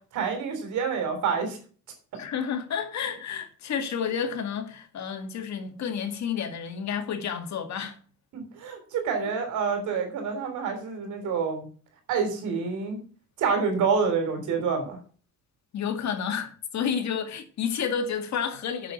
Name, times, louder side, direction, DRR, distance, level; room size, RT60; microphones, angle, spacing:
voice 1, 0.1-1.6 8.3-11.7 12.1-13.0 13.4-15.0, right 5 dB, 85° right, 3.5 m, -27 dB
voice 2, 2.1-8.0 15.7-18.9, left 7 dB, 70° left, 2.0 m, -30 dB
7.4 x 6.8 x 7.1 m
cardioid pair, 80°, 29 cm